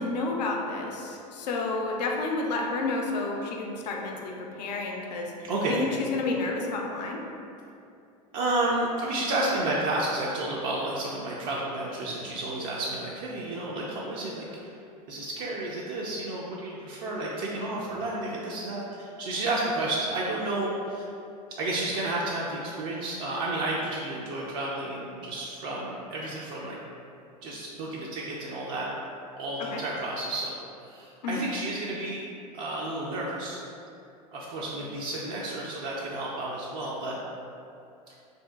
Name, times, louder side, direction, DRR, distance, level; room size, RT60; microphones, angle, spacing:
voice 1, 0.0-5.3 5.7-7.2 29.6-29.8 31.2-31.4, left 3 dB, 80° left, 1 dB, 0.4 m, -30 dB
voice 2, 5.4-5.8 8.3-14.7 15.1-21.0 21.6-26.8 27.4-28.9 29.4-30.5 30.8-32.2 32.5-33.6 34.3-37.2, right 2 dB, 60° right, -5 dB, 0.5 m, -31 dB
3.0 x 2.7 x 2.2 m, 2.6 s
hypercardioid pair, 95°, 21 cm